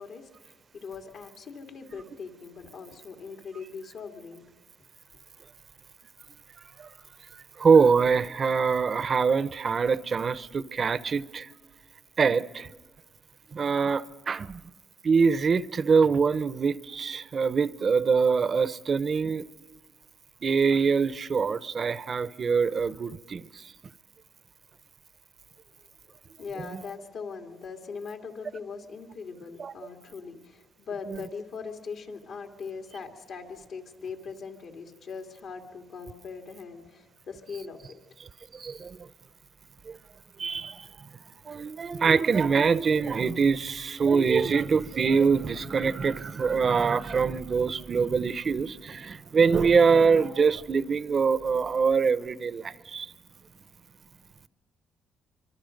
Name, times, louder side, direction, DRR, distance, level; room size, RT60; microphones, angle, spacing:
voice 1, 0.0-4.4 26.4-38.0, left 5 dB, 70° left, 2.6 m, -40 dB
voice 2, 7.6-11.5 12.2-12.7 13.5-14.6 15.0-19.4 20.4-23.4 26.7-26.8 29.6-29.7 31.1-31.2 38.6-39.0 39.9-40.0 40.4-40.8 41.5-53.1, right 5 dB, 45° right, 0.7 m, -24 dB
25.5 x 24.5 x 5.2 m
cardioid pair, 90°, 0 cm